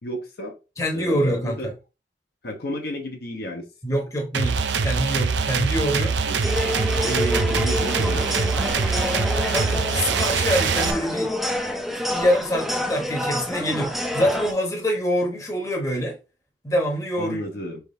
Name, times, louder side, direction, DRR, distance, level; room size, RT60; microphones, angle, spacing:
voice 1, 0.0-0.6 0.9-1.7 2.4-4.0 6.3-6.4 7.5-8.3 17.2-17.8, equal, 60° left, 0.9 m, -32 dB
voice 2, 0.8-1.7 3.8-6.1 7.0-7.7 9.5-11.3 11.9-16.2 16.6-17.4, equal, 20° left, 0.9 m, -25 dB
sound 1, 4.3-10.9, right 5 dB, 80° right, 0.5 m, -23 dB
sound 2, 6.4-14.5, left 1 dB, ahead, 0.5 m, -28 dB
4.5 x 3.6 x 2.6 m
head